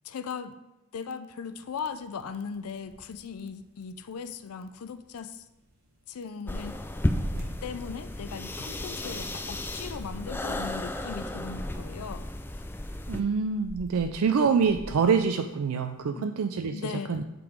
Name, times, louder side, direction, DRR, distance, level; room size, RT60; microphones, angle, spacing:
voice 1, 0.0-0.6 0.9-5.4 6.1-6.8 7.6-12.3 16.2-16.4 16.7-17.3, left 6 dB, 85° left, 11 dB, 0.4 m, -38 dB
sound 1, 1.3-16.1, equal, 45° right, 1.4 m, -48 dB
sound 2, 6.5-13.2, left 1 dB, 10° left, 0.3 m, -33 dB
voice 2, 13.1-17.2, right 5 dB, 80° right, 6 dB, 0.4 m, -26 dB
7.7 x 3.8 x 5.0 m, 1.0 s
head